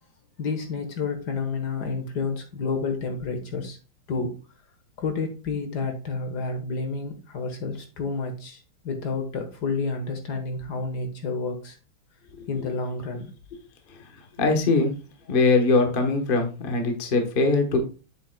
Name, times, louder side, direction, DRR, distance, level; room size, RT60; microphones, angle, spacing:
voice 1, 0.4-3.8 4.1-4.3 5.0-11.8 12.5-13.3, left 4 dB, 55° left, 5 dB, 1.6 m, -30 dB
voice 2, 14.4-14.9 15.3-17.8, left 3 dB, 35° left, 4 dB, 0.9 m, -21 dB
7.7 x 7.0 x 2.2 m, 0.33 s
omnidirectional pair, 2.4 m